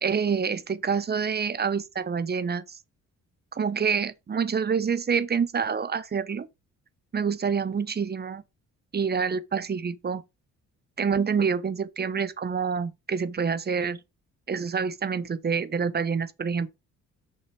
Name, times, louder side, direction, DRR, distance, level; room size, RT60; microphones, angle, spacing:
voice 1, 0.0-2.8 3.5-6.5 7.1-8.4 8.9-10.2 11.0-14.0 14.5-16.7, right 6 dB, 35° right, 1.0 m, -27 dB
6.6 x 5.6 x 4.9 m
cardioid pair, 90°, 30 cm